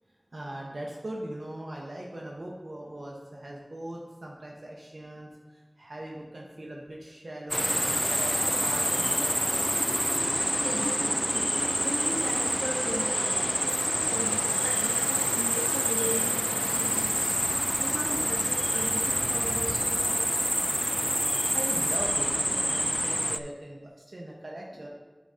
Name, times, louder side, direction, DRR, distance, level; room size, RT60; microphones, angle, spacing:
voice 1, 0.3-9.7 21.5-24.9, right 1 dB, 85° right, -2 dB, 0.9 m, -40 dB
sound 1, 7.5-23.4, equal, 5° right, 0.3 m, -27 dB
voice 2, 10.3-11.5 11.8-13.3 13.6-17.3 17.8-20.3, equal, 25° right, -5 dB, 1.3 m, -37 dB
10.5 x 4.1 x 3.7 m, 1.3 s
wide cardioid pair, 45°, 0 cm